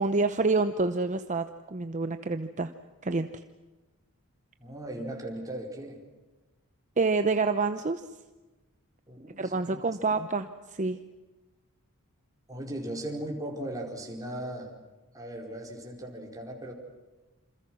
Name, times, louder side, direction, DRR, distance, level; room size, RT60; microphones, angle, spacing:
voice 1, 0.0-2.7 3.0-3.3 7.0-8.1 9.4-11.0, right 3 dB, 35° right, 9 dB, 0.8 m, -27 dB
voice 2, 4.6-6.0 9.1-10.2 12.5-14.7 15.1-16.7, right 1 dB, 15° right, 0 dB, 4.7 m, -38 dB
28.0 x 26.5 x 6.3 m, 1.2 s
head